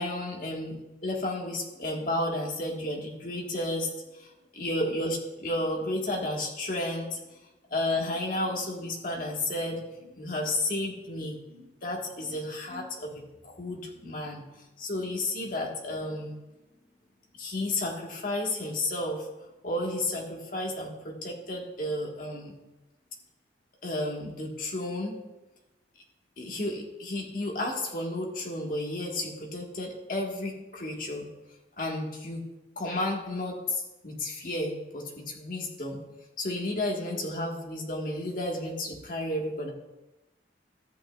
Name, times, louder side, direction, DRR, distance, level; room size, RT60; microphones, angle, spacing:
voice 1, 0.0-3.9 4.2-7.2 7.7-14.4 14.8-16.4 17.4-19.3 19.6-22.6 23.8-25.2 26.4-31.2 31.8-32.4 32.7-36.0 36.4-39.7, left 1 dB, 50° left, -1 dB, 1.7 m, -32 dB
13.5 x 8.5 x 2.4 m, 1.0 s
head